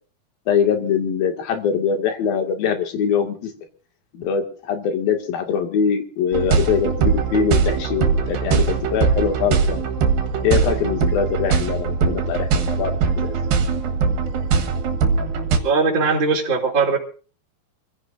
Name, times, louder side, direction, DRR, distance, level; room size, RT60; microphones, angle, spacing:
voice 1, 0.5-3.5 4.1-9.9 10.4-13.3, left 7 dB, 80° left, 4 dB, 3.9 m, -23 dB
sound 1, 6.3-15.6, right 5 dB, 75° right, 3.2 m, -21 dB
voice 2, 15.6-17.0, right 4 dB, 30° right, -2 dB, 3.6 m, -19 dB
27.0 x 16.0 x 2.6 m, 0.40 s
omnidirectional pair, 4.2 m